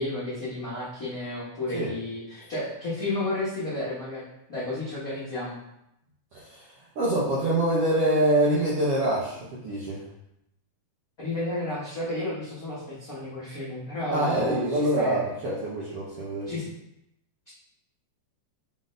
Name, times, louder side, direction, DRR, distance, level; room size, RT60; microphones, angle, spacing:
voice 1, 0.0-4.2 4.5-5.6 11.2-15.2 16.5-16.7, left 2 dB, 75° left, -11 dB, 0.8 m, -32 dB
voice 2, 6.3-6.7 7.0-10.0 14.1-16.5, right 1 dB, 75° right, -7 dB, 1.3 m, -25 dB
5.0 x 3.8 x 2.6 m, 0.82 s
omnidirectional pair, 3.6 m